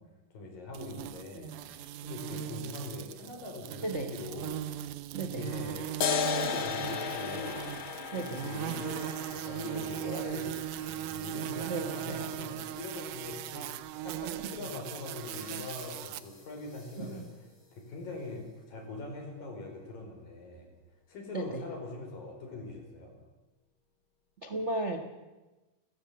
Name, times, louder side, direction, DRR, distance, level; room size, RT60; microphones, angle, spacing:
voice 1, 0.3-4.7 5.3-7.6 8.1-17.2 17.7-20.7 21.1-23.1, left 2 dB, 90° left, 3 dB, 6.8 m, -42 dB
sound 1, 0.7-16.2, right 12 dB, 75° right, 2.3 m, -39 dB
voice 2, 5.1-5.5 8.1-8.5 11.6-12.3 14.6-14.7 17.0-17.3 21.3-21.6 24.4-25.1, right 2 dB, 45° right, 5 dB, 0.9 m, -36 dB
sound 2, 6.0-13.0, left 7 dB, 50° left, 1.6 m, -36 dB
sound 3, 10.1-13.5 15.2-18.7, left 1 dB, 65° left, 8.8 m, -59 dB
29.5 x 15.0 x 8.6 m, 1.1 s
omnidirectional pair, 3.8 m